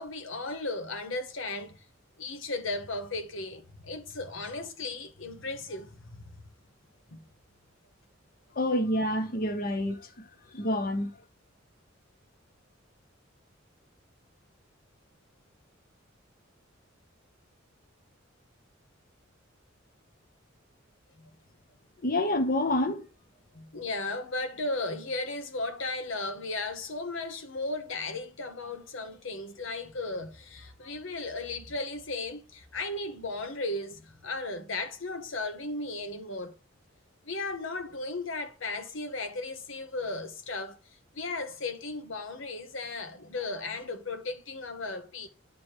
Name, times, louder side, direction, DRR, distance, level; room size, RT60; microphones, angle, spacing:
voice 1, 0.0-1.8 2.2-6.3 7.1-7.2 23.5-36.5 37.2-40.8 41.1-45.3, left 2 dB, 75° left, 1.2 m, -35 dB
voice 2, 8.6-10.3 10.5-11.1 22.0-23.0, left 1 dB, 45° left, 0.9 m, -28 dB
9.3 x 3.1 x 4.7 m
head